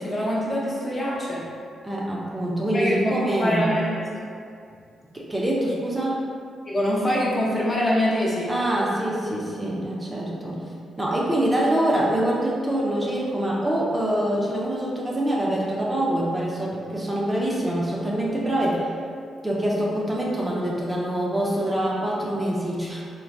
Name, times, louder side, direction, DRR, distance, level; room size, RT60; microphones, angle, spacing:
voice 1, 0.0-1.5 2.7-4.1 6.7-8.5, equal, 30° left, -6 dB, 0.8 m, -24 dB
voice 2, 1.8-3.7 5.1-6.3 8.5-10.6 11.0-18.9 19.4-23.0, right 1 dB, 20° right, -5 dB, 0.5 m, -25 dB
3.2 x 2.1 x 2.6 m, 2.3 s
supercardioid pair, 55°, 0 cm